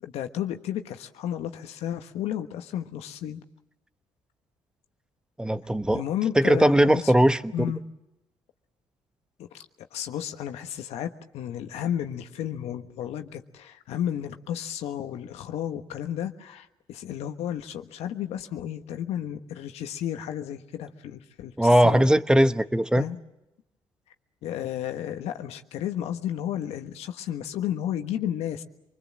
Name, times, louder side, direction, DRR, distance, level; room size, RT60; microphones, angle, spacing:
voice 1, 0.0-3.4 5.9-7.1 7.5-7.8 9.4-9.6 9.9-22.1 22.9-23.2 24.4-28.6, left 10 dB, 80° left, 7 dB, 1.4 m, -32 dB
voice 2, 5.4-6.0 6.4-7.7 21.6-23.0, right 1 dB, 5° right, 12 dB, 1.0 m, -20 dB
26.5 x 21.0 x 7.5 m, 0.93 s
supercardioid pair, 65°, 11 cm